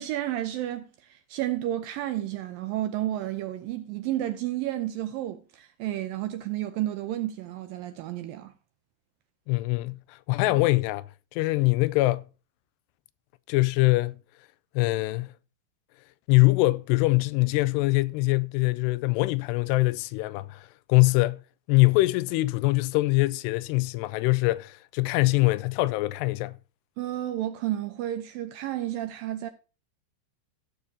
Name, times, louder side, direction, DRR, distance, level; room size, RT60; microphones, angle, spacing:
voice 1, 0.0-8.5 27.0-29.5, right 13 dB, 80° right, 2.1 m, -31 dB
voice 2, 9.5-10.0 10.3-11.1 11.3-12.3 13.5-14.2 14.8-15.3 16.3-21.4 21.7-26.5, left 22 dB, 90° left, 2.7 m, -23 dB
16.0 x 6.8 x 2.7 m
omnidirectional pair, 4.7 m